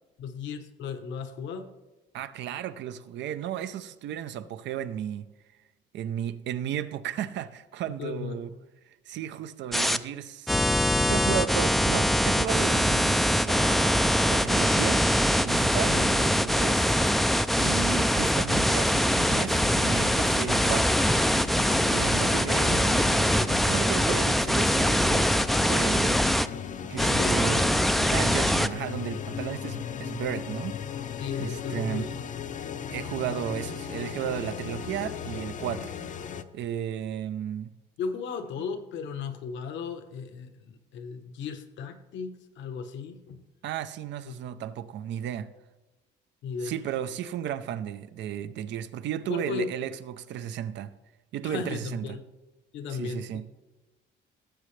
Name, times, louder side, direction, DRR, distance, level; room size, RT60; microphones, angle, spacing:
voice 1, 0.2-1.7 8.0-8.4 15.9-16.1 22.7-23.0 26.5-26.7 27.0-27.7 29.9-30.0 31.2-32.3 38.0-43.4 44.3-44.4 46.4-46.7 49.3-49.7 51.4-52.2 52.7-53.4, left 5 dB, 75° left, 1.1 m, -36 dB
voice 2, 2.1-5.3 5.9-8.5 8.9-10.6 11.0-13.9 14.2-15.1 15.4-16.9 17.6-21.0 21.9-26.4 26.8-27.7 28.1-30.8 31.4-32.1 32.9-35.9 36.5-37.7 43.6-45.5 46.6-50.9 51.3-52.1 52.9-53.5, right 10 dB, 70° right, 0.6 m, -34 dB
sound 1, 9.7-10.0 10.5-26.5 27.0-28.7, equal, ahead, 0.3 m, -23 dB
sound 2, 19.1-36.4, left 8 dB, 40° left, 0.6 m, -37 dB
17.5 x 7.6 x 3.3 m
cardioid pair, 110°, 19 cm